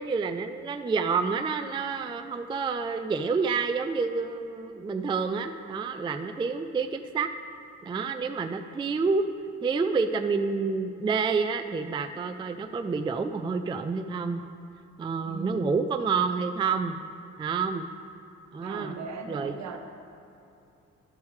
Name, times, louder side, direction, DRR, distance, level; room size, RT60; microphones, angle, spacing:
voice 1, 0.0-7.3 7.8-9.2 9.6-14.4 15.0-17.0 17.4-17.9 18.5-19.0 19.3-19.8, right 5 dB, 15° right, 6 dB, 0.3 m, -28 dB
voice 2, 15.2-15.8 18.6-19.8, right 3 dB, 65° right, 4 dB, 1.0 m, -36 dB
13.0 x 7.0 x 3.2 m, 2.7 s
cardioid pair, 90°, 30 cm